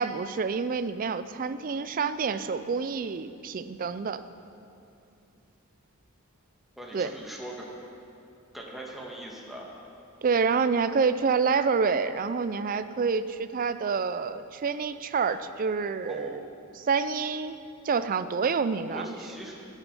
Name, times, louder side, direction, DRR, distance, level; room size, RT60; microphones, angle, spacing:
voice 1, 0.0-4.2 6.9-7.1 10.2-17.6 17.8-19.2, right 5 dB, 40° right, 12 dB, 0.4 m, -28 dB
voice 2, 6.8-7.7 8.5-9.7 16.1-16.3 18.7-19.5, right 1 dB, ahead, -3 dB, 1.6 m, -41 dB
13.0 x 9.2 x 5.3 m, 2.7 s
head